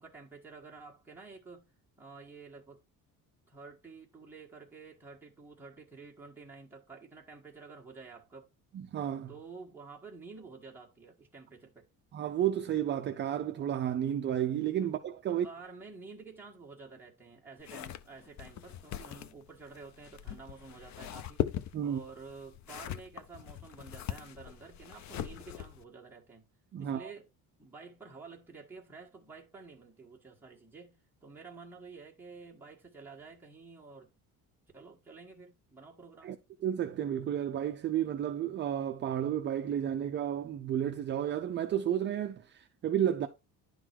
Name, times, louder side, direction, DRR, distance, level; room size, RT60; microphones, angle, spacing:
voice 1, 0.0-1.7 2.0-2.8 3.5-8.5 9.3-11.8 14.8-14.9 15.3-26.5 26.8-27.3 27.6-34.1 34.7-36.4, right 4 dB, 5° right, 1.6 m, -50 dB
voice 2, 8.7-9.3 12.1-15.5 21.7-22.0 26.7-27.1 36.2-36.4 36.6-43.3, right 10 dB, 30° right, 0.5 m, -32 dB
sound 1, 17.6-25.8, left 11 dB, 50° left, 0.6 m, -40 dB
11.0 x 3.9 x 4.6 m
cardioid pair, 175°, 35 cm